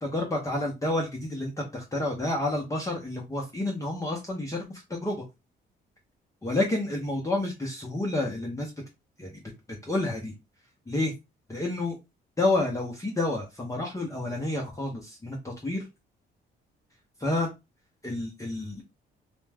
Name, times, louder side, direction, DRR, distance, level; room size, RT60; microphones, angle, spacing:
voice 1, 0.0-5.2 6.4-8.7 9.2-9.4 9.8-10.3 10.9-11.1 11.5-12.0 12.4-15.9 17.2-17.5 18.0-18.8, left 2 dB, 15° left, -1 dB, 0.7 m, -29 dB
2.5 x 2.1 x 3.3 m, 0.24 s
cardioid pair, 90°, 20 cm